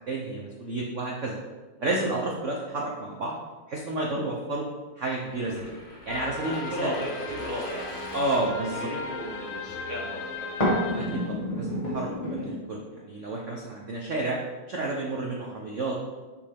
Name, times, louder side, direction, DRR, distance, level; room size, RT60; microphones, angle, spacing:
voice 1, 0.0-1.4 1.8-3.4 3.7-4.7 5.0-5.8 6.1-6.9 8.1-8.9 10.9-14.4 14.7-16.0, right 2 dB, 75° right, -2 dB, 0.6 m, -31 dB
sound 1, 5.3-9.1 10.6-12.5, equal, 15° left, 1.8 m, -32 dB
sound 2, 6.1-11.3, left 3 dB, 75° left, 1.7 m, -36 dB
voice 2, 6.4-11.2, equal, 55° right, -6 dB, 2.3 m, -36 dB
7.0 x 5.2 x 3.5 m, 1.3 s
omnidirectional pair, 2.4 m